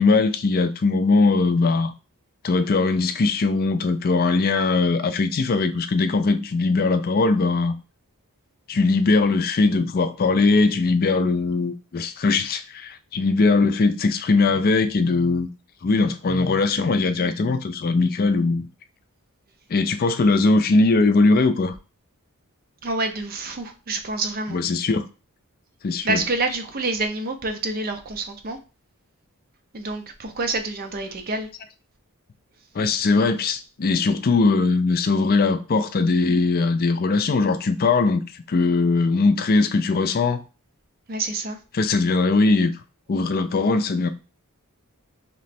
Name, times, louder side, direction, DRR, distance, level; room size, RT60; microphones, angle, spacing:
voice 1, 0.0-1.9 2.4-7.7 8.7-15.5 15.8-18.7 19.7-21.7 24.5-25.0 25.8-26.2 32.7-38.2 38.5-40.4 41.7-42.8 43.1-44.1, left 3 dB, 40° left, 0.4 m, -20 dB
voice 2, 22.8-24.6 26.0-28.6 29.7-31.5 41.1-41.6, right 3 dB, 40° right, 0.6 m, -27 dB
3.1 x 3.0 x 4.2 m
head